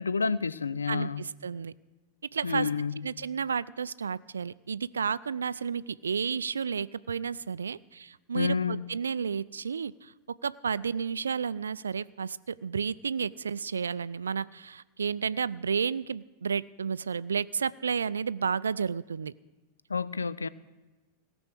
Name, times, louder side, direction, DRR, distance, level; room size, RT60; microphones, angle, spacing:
voice 1, 0.0-1.2 2.4-3.1 8.3-8.8 19.9-20.5, left 5 dB, 75° left, 17 dB, 0.5 m, -29 dB
voice 2, 0.9-1.7 2.3-2.7 3.0-10.1 10.4-19.3, right 6 dB, 70° right, 19 dB, 0.3 m, -32 dB
17.5 x 6.0 x 8.3 m, 1.2 s
figure-of-eight pair, 90°, 0 cm